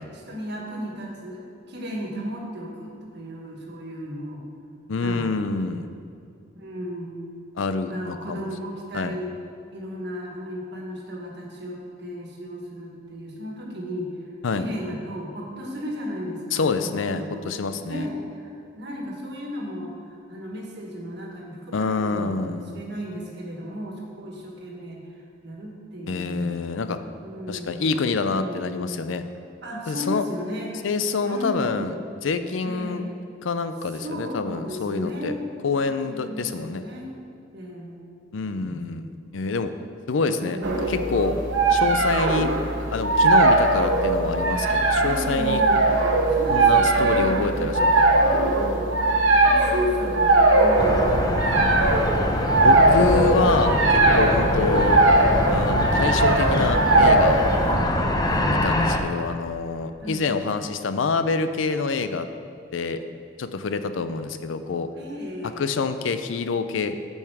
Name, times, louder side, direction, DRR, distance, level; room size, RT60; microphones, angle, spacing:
voice 1, 0.1-4.4 5.0-5.2 6.6-7.3 7.8-9.3 9.7-14.1 14.6-17.5 17.8-25.0 25.4-26.6 27.2-28.0 28.3-28.9 29.6-30.7 31.2-32.2 32.6-33.2 34.0-35.4 35.8-37.1 37.5-38.0 38.5-39.0 40.4-41.0 45.0-45.9 46.3-48.1 48.4-49.2 49.5-51.8 57.6-58.0 58.2-58.6 60.0-60.3 64.9-65.6, equal, 65° right, -1 dB, 1.6 m, -35 dB
voice 2, 4.9-5.9 7.6-8.5 8.9-9.1 14.4-14.7 16.5-18.1 21.7-22.7 26.1-27.0 27.5-29.2 29.9-30.2 30.8-31.9 32.2-33.0 33.4-35.3 35.6-36.8 38.3-39.1 39.3-39.7 40.1-40.6 40.9-41.4 41.7-42.5 42.9-45.6 46.5-48.1 52.6-55.0 55.5-57.5 58.5-62.3 62.7-63.0 63.4-64.9 65.6-67.0, left 4 dB, 90° left, 10 dB, 0.5 m, -26 dB
sound 1, 40.6-57.7, right 2 dB, 85° right, 1.0 m, -20 dB
sound 2, 50.8-59.0, left 1 dB, 20° left, 0.6 m, -24 dB
9.0 x 5.6 x 4.8 m, 2.5 s
head